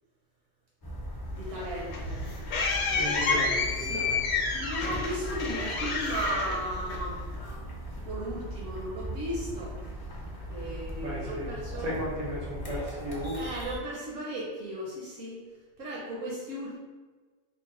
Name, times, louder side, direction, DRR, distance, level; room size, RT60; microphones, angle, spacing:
sound 1, 0.8-13.8, equal, 30° left, 0.4 m, -39 dB
voice 1, 1.3-2.2 2.9-7.3 8.0-9.7 10.5-11.9 13.4-15.4 15.8-16.8, right 1 dB, 75° right, -3 dB, 1.0 m, -36 dB
sound 2, 1.5-7.4, left 4 dB, 65° left, 0.8 m, -30 dB
voice 2, 2.9-4.2 11.0-11.5 11.8-13.5, equal, 90° right, -5 dB, 1.5 m, -35 dB
3.8 x 2.1 x 3.7 m, 1.4 s
omnidirectional pair, 1.3 m